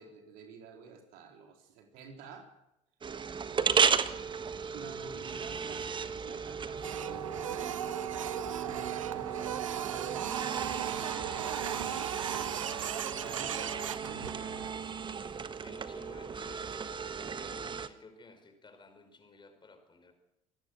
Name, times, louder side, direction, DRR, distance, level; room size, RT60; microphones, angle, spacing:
voice 1, 0.0-2.5 3.5-3.8 4.7-7.8 8.7-12.5 13.2-15.0, right 6 dB, 60° right, 3 dB, 4.1 m, -50 dB
sound 1, 3.0-17.9, right 6 dB, 30° right, 1.4 m, -35 dB
voice 2, 5.3-5.6 15.2-20.1, left 3 dB, 30° left, 7 dB, 5.2 m, -55 dB
Printer, 6.8-14.7, right 10 dB, 80° right, 0.8 m, -37 dB
26.0 x 18.5 x 6.6 m, 0.85 s
figure-of-eight pair, 55°, 17 cm